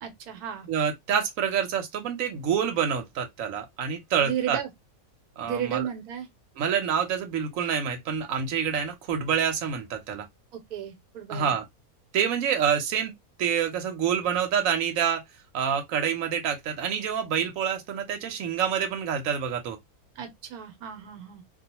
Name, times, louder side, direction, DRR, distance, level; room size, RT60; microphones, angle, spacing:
voice 1, 0.0-0.7 4.2-4.7 5.4-6.3 10.5-11.5 20.2-21.4, right 9 dB, 85° right, 1.2 m, -34 dB
voice 2, 0.7-4.6 5.4-5.9 6.6-10.3 11.3-11.6 12.1-13.1 13.4-15.2 15.5-19.8, right 8 dB, 70° right, 1.1 m, -27 dB
2.4 x 2.3 x 2.8 m
omnidirectional pair, 1.6 m